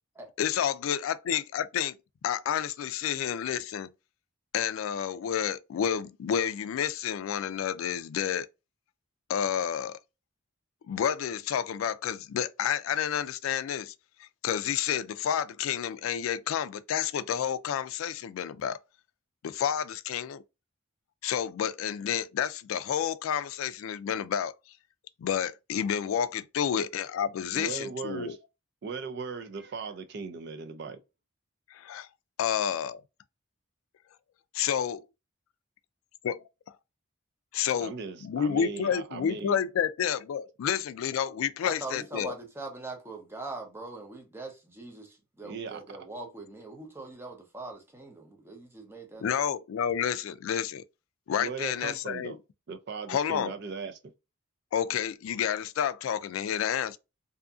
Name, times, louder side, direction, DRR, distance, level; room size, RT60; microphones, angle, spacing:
voice 1, 0.4-1.9 2.2-3.9 4.5-8.5 9.3-10.0 10.9-13.9 14.4-18.8 19.4-20.4 21.2-24.5 25.2-28.3 31.9-32.1 32.4-33.0 34.5-35.0 36.2-36.4 37.5-37.9 38.2-42.3 49.2-50.8 51.3-52.4 53.1-53.5 54.7-57.0, left 8 dB, 85° left, 0.3 m, -30 dB
voice 2, 27.5-28.4 28.8-31.0 37.8-39.5 45.4-46.0 51.4-52.4 52.7-54.0, right 4 dB, 55° right, 0.5 m, -38 dB
voice 3, 41.6-49.4, right 3 dB, 10° right, 0.6 m, -42 dB
2.7 x 2.5 x 2.3 m
head